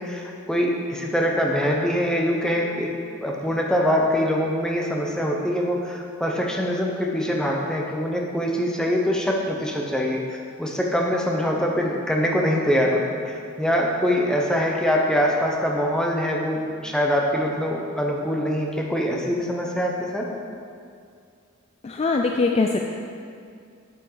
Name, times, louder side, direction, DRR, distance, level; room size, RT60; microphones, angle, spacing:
voice 1, 0.0-20.3, equal, 5° left, -1 dB, 0.8 m, -24 dB
voice 2, 21.8-22.8, left 3 dB, 30° left, 2 dB, 0.3 m, -22 dB
7.7 x 7.6 x 3.9 m, 2.3 s
head